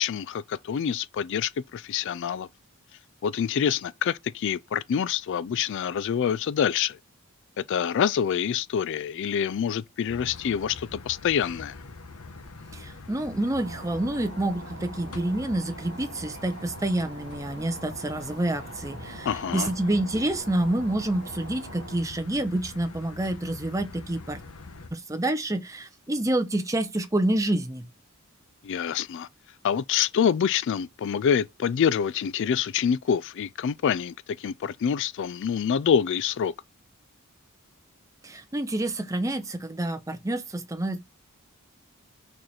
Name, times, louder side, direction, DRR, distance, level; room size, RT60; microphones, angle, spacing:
voice 1, 0.0-2.5 3.2-7.0 7.6-11.8 19.3-19.7 28.6-29.3 29.6-36.5, left 7 dB, 55° left, 0.3 m, -26 dB
sound 1, 10.1-24.9, left 3 dB, 80° left, 1.2 m, -44 dB
voice 2, 12.7-24.4 24.9-27.9 38.2-41.0, right 1 dB, 15° right, 0.8 m, -28 dB
sound 2, 13.3-22.1, right 3 dB, 50° right, 1.0 m, -44 dB
6.4 x 4.3 x 6.3 m
head